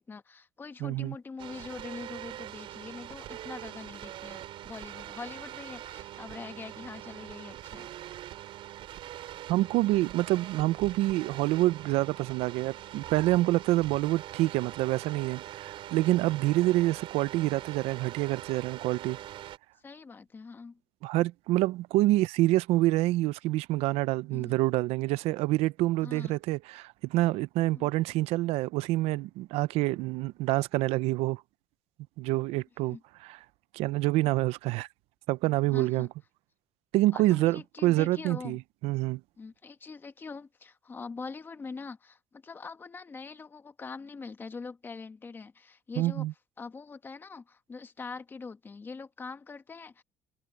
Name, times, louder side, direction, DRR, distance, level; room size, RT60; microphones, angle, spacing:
voice 1, 0.0-7.9 19.8-20.8 24.3-24.6 26.0-26.4 27.7-27.9 32.9-33.0 35.7-36.1 37.1-38.6 39.4-46.2 46.6-50.0, left 4 dB, 20° left, 1.2 m, -43 dB
voice 2, 0.8-1.1 9.5-19.2 21.0-31.4 32.2-33.0 33.2-33.4 33.7-34.9 35.3-36.1 36.9-39.2 46.0-46.3, right 17 dB, 80° right, 0.6 m, -27 dB
sound 1, 1.4-19.6, right 13 dB, 55° right, 5.5 m, -43 dB
cardioid pair, 160°, 10 cm